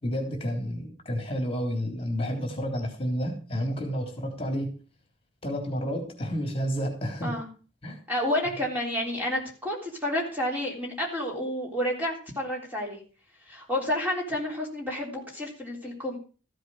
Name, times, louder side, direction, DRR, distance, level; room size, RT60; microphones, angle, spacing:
voice 1, 0.0-4.7 5.4-7.4 7.8-8.0, equal, 30° left, 3 dB, 3.5 m, -30 dB
voice 2, 8.1-13.0 13.5-16.2, left 1 dB, 10° right, -1 dB, 3.7 m, -30 dB
14.5 x 8.0 x 6.3 m, 0.37 s
head